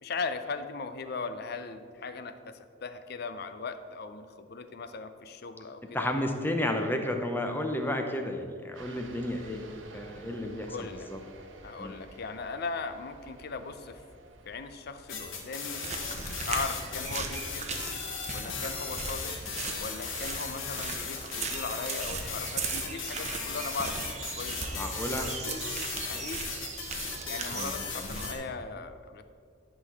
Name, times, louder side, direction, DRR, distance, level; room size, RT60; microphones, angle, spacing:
voice 1, 0.0-6.1 10.7-11.1 11.6-14.0 14.5-15.8 16.5-17.7 18.3-19.4 19.8-24.8 26.0-26.4 27.3-29.2, left 4 dB, 55° left, 10 dB, 0.6 m, -38 dB
voice 2, 5.9-9.6 9.9-11.2 11.8-11.9 24.7-25.3 27.5-28.1, left 1 dB, 10° left, 4 dB, 0.7 m, -32 dB
sound 1, 8.7-21.7, right 2 dB, 70° right, 0.9 m, -53 dB
sound 2, 15.1-28.3, left 5 dB, 80° left, 1.3 m, -37 dB
sound 3, 15.8-28.4, right 4 dB, 35° right, 0.8 m, -38 dB
11.0 x 3.9 x 7.2 m, 2.2 s
head